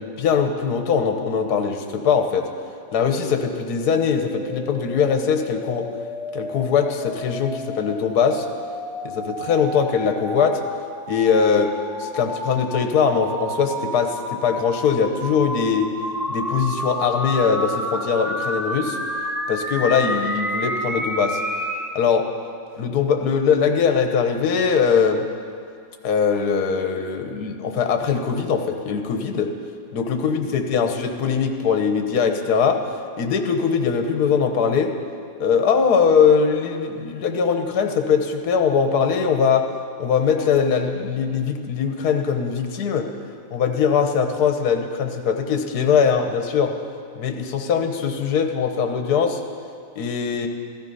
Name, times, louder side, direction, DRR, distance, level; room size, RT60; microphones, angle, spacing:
voice 1, 0.0-2.5 2.9-5.9 6.3-8.5 9.0-10.6 11.1-11.7 12.0-15.9 16.3-19.0 19.5-21.4 21.9-22.3 22.8-25.2 26.0-29.5 29.9-32.8 33.2-34.9 35.4-39.7 40.0-43.1 43.5-46.7 47.1-49.4 49.9-50.5, left 6 dB, 60° left, 5 dB, 1.5 m, -21 dB
sound 1, 3.0-21.9, equal, ahead, 0.4 m, -30 dB
15.5 x 13.5 x 5.5 m, 2.3 s
omnidirectional pair, 2.0 m